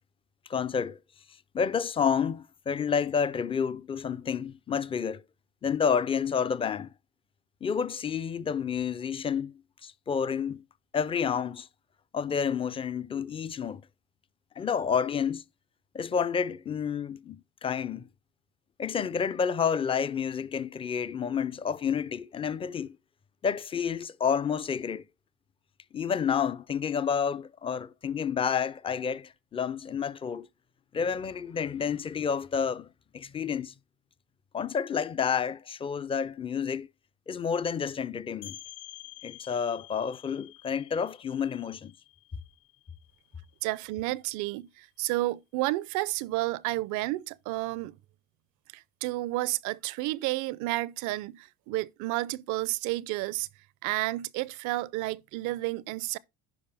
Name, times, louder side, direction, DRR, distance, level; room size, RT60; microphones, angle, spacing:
voice 1, 0.5-1.0 1.5-5.2 5.6-6.9 7.6-10.6 10.9-11.7 12.1-13.8 14.6-15.4 15.9-18.1 18.8-23.0 23.4-25.0 25.9-30.5 30.9-32.9 33.1-33.7 34.5-36.9 37.3-38.6 39.2-41.9, left 7 dB, 20° left, 0.4 m, -29 dB
sound 1, 38.4-43.9, left 15 dB, 40° left, 0.8 m, -49 dB
voice 2, 43.6-48.0 48.7-53.5 53.8-56.2, right 19 dB, 65° right, 0.5 m, -31 dB
11.0 x 4.8 x 3.3 m
supercardioid pair, 110°, 32 cm